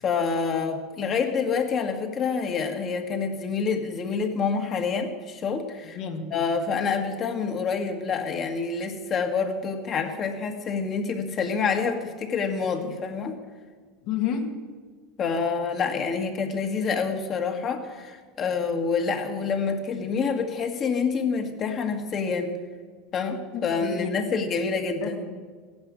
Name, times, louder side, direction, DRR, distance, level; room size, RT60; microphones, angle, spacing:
voice 1, 0.0-6.0 6.3-13.4 15.2-22.5 23.1-25.2, left 5 dB, 35° left, 4 dB, 1.9 m, -27 dB
voice 2, 5.9-6.3 14.0-14.4 23.5-24.1 25.0-25.4, left 8 dB, 65° left, 3 dB, 2.1 m, -30 dB
15.5 x 10.5 x 6.4 m, 1.5 s
supercardioid pair, 120°, 0 cm